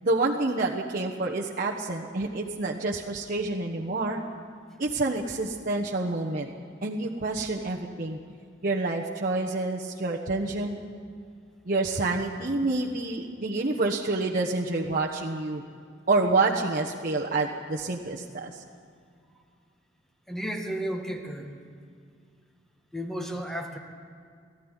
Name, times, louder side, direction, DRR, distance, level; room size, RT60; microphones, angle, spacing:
voice 1, 0.0-4.2 4.8-6.5 6.8-8.2 8.6-10.8 11.6-15.6 16.1-18.6, right 2 dB, 45° right, -3 dB, 1.2 m, -28 dB
voice 2, 20.3-21.5 22.9-23.8, equal, ahead, 3 dB, 1.7 m, -33 dB
19.0 x 14.0 x 9.9 m, 2.2 s
head